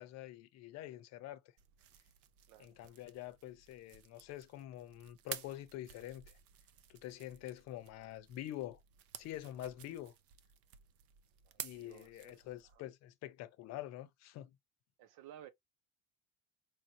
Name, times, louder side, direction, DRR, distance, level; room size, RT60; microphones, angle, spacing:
voice 1, 0.0-1.4 2.6-6.4 6.9-8.8 9.2-10.1 11.6-14.6, left 13 dB, 55° left, 0.7 m, -46 dB
sound 1, 1.6-12.8, right 10 dB, 50° right, 0.5 m, -53 dB
voice 2, 11.4-12.8 15.0-15.5, right 11 dB, 80° right, 0.9 m, -57 dB
4.6 x 2.6 x 2.8 m
cardioid pair, 180°, 31 cm